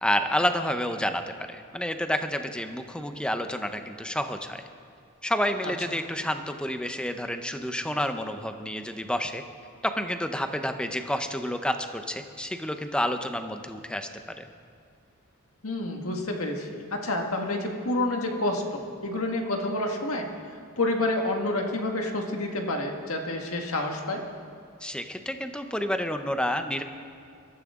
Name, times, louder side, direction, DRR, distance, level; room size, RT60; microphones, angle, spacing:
voice 1, 0.0-4.6 5.2-9.4 9.8-14.1 14.4-14.5 24.8-26.8, left 1 dB, 5° left, 7 dB, 0.7 m, -29 dB
voice 2, 15.6-20.3 20.8-24.2, left 2 dB, 70° left, 2 dB, 1.8 m, -29 dB
23.0 x 13.5 x 3.7 m, 2.3 s
head